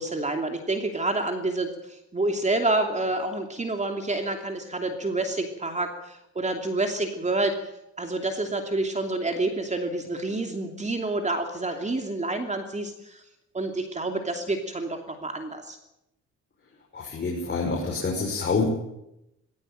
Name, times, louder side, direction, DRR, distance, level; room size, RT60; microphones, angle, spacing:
voice 1, 0.0-7.6 8.0-13.2 13.5-15.8, right 2 dB, 25° right, 5 dB, 2.8 m, -28 dB
voice 2, 16.9-18.7, left 3 dB, 35° left, -2 dB, 6.2 m, -27 dB
20.0 x 17.5 x 9.1 m, 0.87 s
cardioid pair, 90°, 30 cm